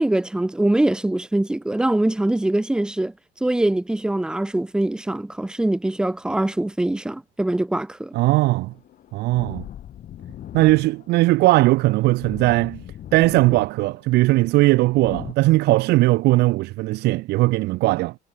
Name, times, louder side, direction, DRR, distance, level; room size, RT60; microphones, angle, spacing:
voice 1, 0.0-3.1 3.4-8.1, right 1 dB, 5° right, 0.3 m, -23 dB
voice 2, 8.1-8.7 9.1-9.6 10.5-12.8 13.1-18.1, right 19 dB, 80° right, 0.5 m, -19 dB
sound 1, 8.2-15.3, left 11 dB, 60° left, 3.3 m, -40 dB
cardioid pair, 110°, 17 cm